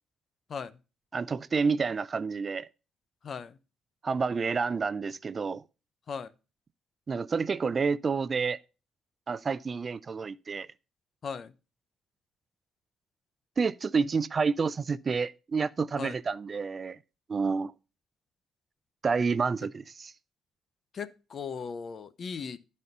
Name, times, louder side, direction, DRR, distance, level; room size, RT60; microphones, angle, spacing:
voice 1, 1.1-2.7 4.0-5.6 7.1-8.6 9.3-10.7 13.6-17.0 17.3-17.7 19.0-20.1, right 5 dB, 40° right, 0.4 m, -29 dB
voice 2, 3.2-3.6 6.1-6.3 11.2-11.5 16.0-16.1 20.9-22.6, left 6 dB, 50° left, 0.7 m, -37 dB
12.0 x 4.3 x 5.3 m
cardioid pair, 90°, 0 cm